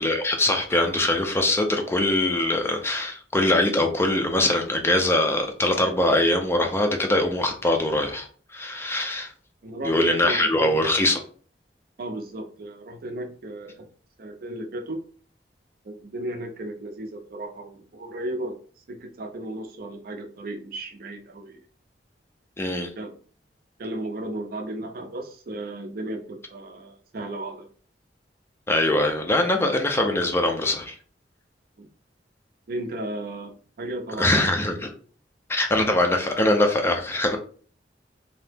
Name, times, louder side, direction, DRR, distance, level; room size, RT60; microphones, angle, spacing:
voice 1, 0.0-9.3 9.8-11.2 22.6-22.9 28.7-31.0 34.2-34.9 35.5-37.4, left 1 dB, 15° left, 4 dB, 0.4 m, -22 dB
voice 2, 9.6-10.7 12.0-13.8 14.2-15.0 15.8-18.6 18.9-21.6 23.0-23.1 23.8-27.7 31.8-31.9 32.7-34.5, right 1 dB, 55° right, 5 dB, 0.5 m, -35 dB
2.7 x 2.0 x 3.3 m, 0.43 s
head